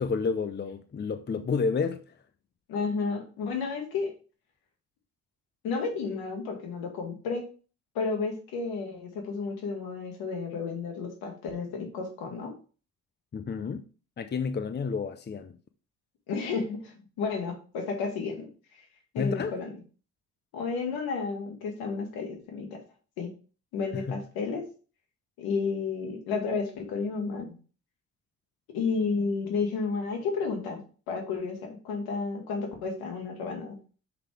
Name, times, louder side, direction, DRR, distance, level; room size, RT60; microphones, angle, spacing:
voice 1, 0.0-2.0 13.3-13.9 14.2-15.6 19.2-19.6 23.9-24.2, left 5 dB, 30° left, 0.7 m, -30 dB
voice 2, 2.7-4.1 5.6-7.4 8.0-12.5 16.3-18.5 19.1-19.7 20.5-22.8 23.2-23.3 23.7-24.6 25.4-27.5 28.7-30.8 31.1-33.8, left 4 dB, 80° left, 2.0 m, -32 dB
5.8 x 5.6 x 3.4 m
supercardioid pair, 60°, 36 cm